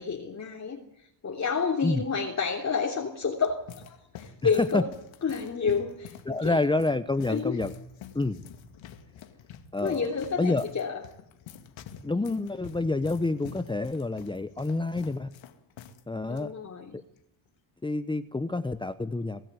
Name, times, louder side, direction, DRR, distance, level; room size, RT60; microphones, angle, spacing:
voice 1, 0.0-3.6 3.9-4.8 5.2-6.6 7.3-7.5 9.8-11.0 16.3-16.9, left 5 dB, 35° left, -1 dB, 3.3 m, -30 dB
sound 1, 3.1-16.0 16.3-16.4 17.2-17.5, left 7 dB, 70° left, 2.4 m, -47 dB
voice 2, 4.4-4.8 6.3-7.7 8.1-8.4 9.7-10.1 10.4-10.7 12.0-15.3 16.1-16.5 16.9-17.0 17.8-19.4, left 2 dB, 10° left, 12 dB, 0.9 m, -28 dB
24.5 x 13.5 x 9.5 m, 0.83 s
cardioid pair, 105°, 47 cm